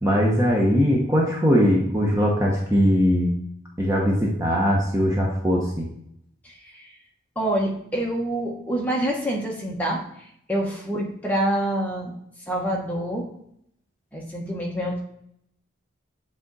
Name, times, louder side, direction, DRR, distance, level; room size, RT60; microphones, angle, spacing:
voice 1, 0.0-3.3 3.8-5.9, equal, 15° right, -3 dB, 0.8 m, -20 dB
voice 2, 6.4-6.9 7.3-12.1 12.5-13.3 14.1-15.0, right 1 dB, 5° left, -2 dB, 1.1 m, -27 dB
7.9 x 3.5 x 4.1 m, 0.72 s
head